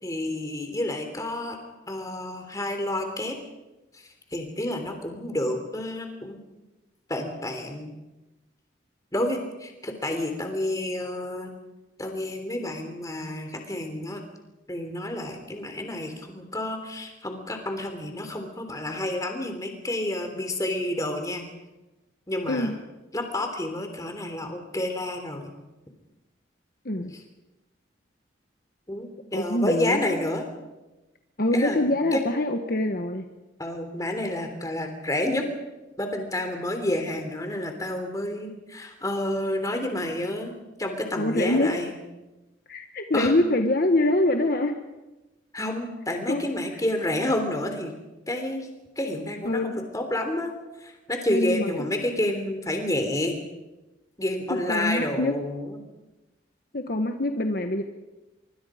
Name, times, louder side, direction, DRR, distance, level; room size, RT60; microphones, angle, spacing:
voice 1, 0.0-1.6 1.9-3.4 3.9-4.0 4.3-6.4 7.1-7.9 9.1-11.5 12.0-14.2 14.7-21.4 22.3-22.7 23.1-25.5 28.9-30.5 31.5-32.2 33.6-35.5 36.0-41.9 43.1-43.3 45.5-48.0 48.3-48.7 48.9-53.4 54.2-55.8, left 1 dB, 20° left, 5 dB, 3.4 m, -29 dB
voice 2, 26.8-27.2 29.3-30.0 31.4-33.3 41.2-41.7 42.7-44.8 46.3-46.5 49.4-49.8 51.3-51.7 54.7-55.4 56.7-57.8, left 1 dB, 50° left, 4 dB, 1.3 m, -24 dB
25.0 x 24.0 x 5.1 m, 1.1 s
head